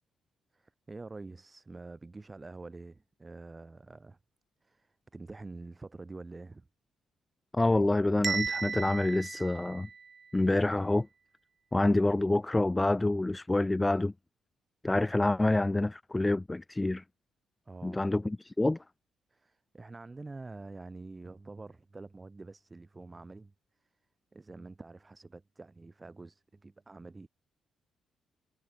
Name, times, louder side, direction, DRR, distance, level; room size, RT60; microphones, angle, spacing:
voice 1, 0.5-4.2 4.6-6.7 17.7-18.1 19.3-24.0 24.3-27.3, right 3 dB, 20° right, 3.8 m, -47 dB
voice 2, 7.5-9.9 10.3-11.1 11.7-14.1 14.8-17.0 17.8-18.8, left 2 dB, 15° left, 1.1 m, -27 dB
Bell, 8.2-10.3, right 5 dB, 40° right, 0.5 m, -35 dB
cardioid pair, 90°, 0 cm